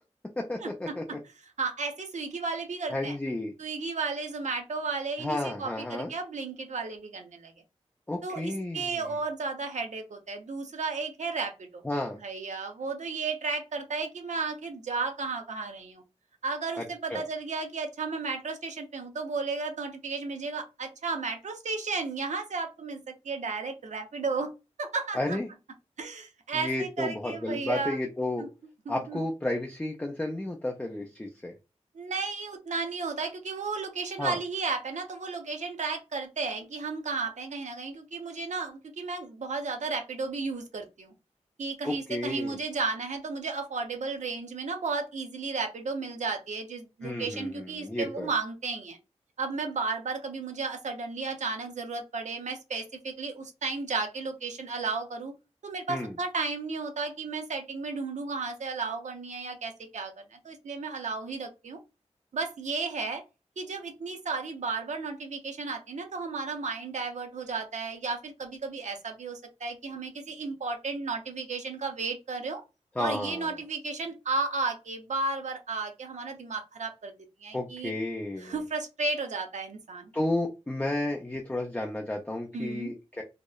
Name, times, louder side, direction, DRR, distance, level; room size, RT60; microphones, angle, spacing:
voice 1, 0.4-1.2 2.9-3.5 5.2-6.1 8.1-9.0 11.8-12.2 16.8-17.2 25.1-25.5 26.5-28.5 28.9-31.5 34.2-34.4 41.8-42.6 47.0-48.3 55.9-56.1 73.0-73.5 77.5-78.6 80.1-83.2, left 1 dB, 10° left, 1 dB, 0.4 m, -32 dB
voice 2, 1.6-3.2 3.6-7.5 8.2-11.8 12.2-16.0 16.4-24.5 24.8-25.4 26.0-28.0 28.4-28.5 28.9-29.2 31.9-41.1 41.6-49.0 49.4-55.3 55.6-61.8 62.3-63.2 63.6-72.6 73.0-77.1 77.4-77.9 78.4-80.1 82.5-82.9, right 4 dB, 85° right, 4 dB, 0.5 m, -33 dB
2.8 x 2.0 x 2.2 m, 0.27 s
wide cardioid pair, 70°, 12 cm